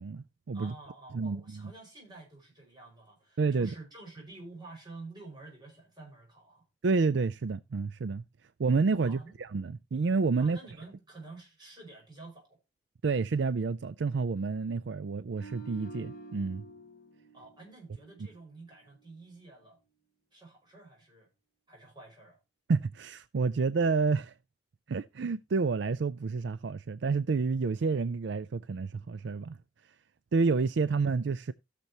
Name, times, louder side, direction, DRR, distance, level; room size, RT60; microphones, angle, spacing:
voice 1, 0.0-0.7 1.1-1.7 3.4-3.7 6.8-8.2 8.6-10.6 13.0-16.6 22.7-24.3 24.9-29.6 30.3-31.5, right 4 dB, 70° right, 0.4 m, -29 dB
voice 2, 0.5-6.6 9.0-9.3 10.4-12.6 17.3-19.8 20.3-21.3 21.7-22.4, right 3 dB, 25° right, 5.6 m, -49 dB
sound 1, 15.3-18.6 18.9-19.2, right 3 dB, 55° left, 1.1 m, -49 dB
16.5 x 6.8 x 2.9 m
head